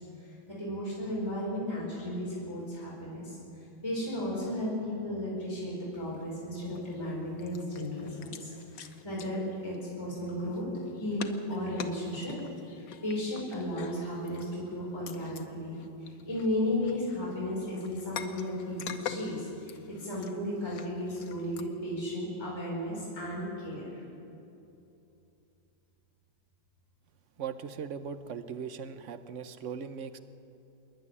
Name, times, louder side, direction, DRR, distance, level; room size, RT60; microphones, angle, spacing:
voice 1, 0.2-3.4 3.8-10.7 11.0-12.3 12.7-24.0, left 1 dB, 15° left, -6 dB, 4.9 m, -34 dB
sound 1, 5.9-6.4 6.7-7.1 7.4-10.1 10.5-15.5 15.7-21.6, left 8 dB, 65° left, 1.6 m, -45 dB
voice 2, 27.4-30.2, right 7 dB, 55° right, 10 dB, 0.9 m, -39 dB
26.5 x 11.0 x 9.8 m, 2.8 s
omnidirectional pair, 2.1 m